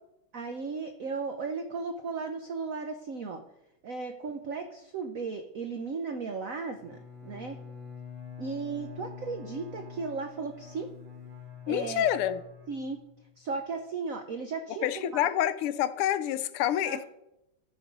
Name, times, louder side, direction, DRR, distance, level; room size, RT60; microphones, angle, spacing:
voice 1, 0.3-3.4 3.8-7.6 8.4-10.9 11.7-12.1 12.7-13.0 13.4-15.3 16.8-17.0, right 4 dB, 85° right, 6 dB, 0.7 m, -36 dB
Bowed string instrument, 6.7-13.4, left 7 dB, 30° right, 2.2 m, -46 dB
voice 2, 11.7-12.4 14.8-17.0, left 11 dB, 90° left, 13 dB, 1.6 m, -27 dB
13.5 x 5.4 x 5.2 m, 0.88 s
omnidirectional pair, 2.4 m